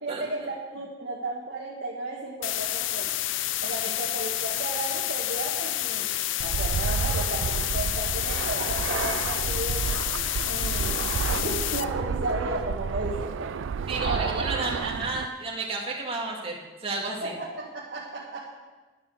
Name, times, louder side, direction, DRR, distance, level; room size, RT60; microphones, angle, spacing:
voice 1, 0.0-3.1 3.6-10.0 10.5-13.5 14.0-14.4 17.2-18.4, right 2 dB, 60° right, -4 dB, 1.6 m, -34 dB
sound 1, 2.4-11.8, left 14 dB, 75° left, 0.4 m, -29 dB
Fixed-wing aircraft airplane, 6.4-15.2, right 6 dB, 80° right, 0.4 m, -30 dB
voice 2, 13.9-17.4, right 3 dB, 30° right, -1 dB, 2.1 m, -32 dB
10.5 x 10.0 x 6.9 m, 1.3 s
head